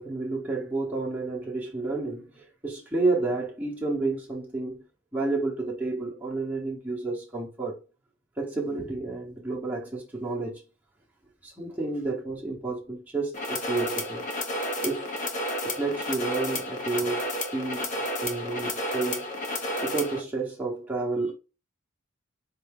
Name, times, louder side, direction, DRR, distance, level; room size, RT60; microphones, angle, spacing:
voice 1, 0.0-4.8 5.1-7.8 8.4-10.6 11.4-14.2 14.8-15.1 15.6-17.9 18.2-19.3 19.8-21.3, right 3 dB, 5° right, 0.9 m, -30 dB
sound 1, 13.3-20.2, left 1 dB, 40° left, 0.9 m, -31 dB
4.4 x 2.7 x 3.5 m
head